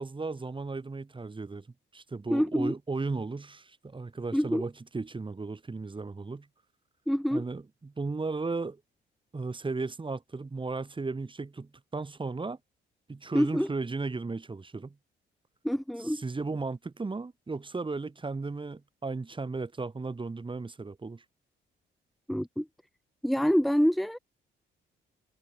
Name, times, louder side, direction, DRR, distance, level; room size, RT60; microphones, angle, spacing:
voice 1, 0.0-1.7 1.9-6.5 7.3-8.8 9.3-12.6 13.1-15.0 16.1-21.2, right 3 dB, 25° right, 6.1 m, -35 dB
voice 2, 2.3-2.7 4.3-4.7 7.1-7.4 13.3-13.7 15.6-16.2 22.3-22.7 23.2-24.2, equal, ahead, 1.1 m, -26 dB
cardioid pair, 90°, 20 cm